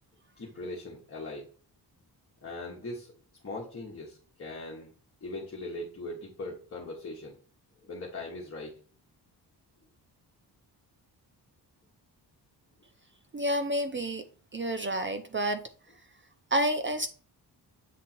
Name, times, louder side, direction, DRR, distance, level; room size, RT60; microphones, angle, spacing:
voice 1, 0.4-1.5 2.4-3.1 3.4-4.9 5.2-7.3 7.8-8.7, left 2 dB, 35° left, -2 dB, 1.5 m, -40 dB
voice 2, 13.3-14.2 14.5-15.6 16.5-17.1, right 1 dB, 30° right, 9 dB, 0.5 m, -29 dB
7.7 x 3.6 x 4.4 m, 0.41 s
wide cardioid pair, 145°, 41 cm